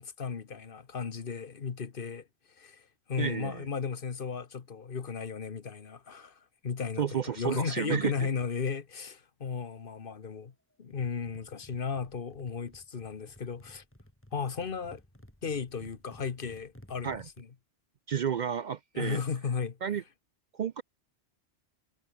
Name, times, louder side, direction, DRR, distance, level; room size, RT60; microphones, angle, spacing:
voice 1, 0.0-10.5 10.8-13.8 14.3-15.0 15.4-17.5 18.9-20.0, left 6 dB, 55° left, 1.3 m, -35 dB
voice 2, 3.2-3.7 7.0-8.3 17.0-17.3 18.1-19.2 19.8-20.0 20.5-20.8, right 8 dB, 55° right, 0.6 m, -31 dB
sound 1, 10.9-17.4, equal, 10° left, 3.9 m, -55 dB
omnidirectional pair, 1.1 m